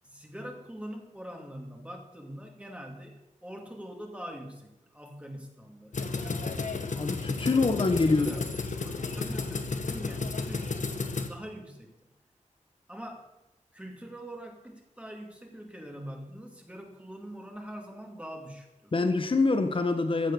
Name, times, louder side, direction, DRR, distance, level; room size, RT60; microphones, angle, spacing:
voice 1, 0.0-7.0 7.3-12.1 12.9-13.3 13.7-18.9, equal, 10° right, 2 dB, 2.4 m, -44 dB
sound 1, 5.9-11.3, left 4 dB, 70° left, 1.4 m, -33 dB
voice 2, 7.0-8.3 18.9-20.3, left 3 dB, 40° left, 8 dB, 1.2 m, -25 dB
14.5 x 7.6 x 6.9 m, 0.92 s
wide cardioid pair, 95°, 13 cm